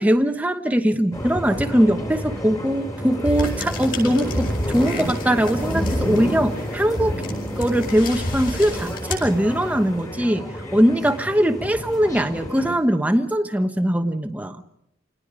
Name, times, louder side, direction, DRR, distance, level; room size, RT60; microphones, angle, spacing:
voice 1, 0.0-7.2 7.6-14.6, equal, 10° right, 7 dB, 1.1 m, -21 dB
sound 1, 1.1-12.8, equal, 20° left, 2.8 m, -30 dB
sound 2, 3.2-9.9, left 1 dB, 45° left, 7.1 m, -30 dB
28.0 x 19.5 x 5.0 m, 0.79 s
head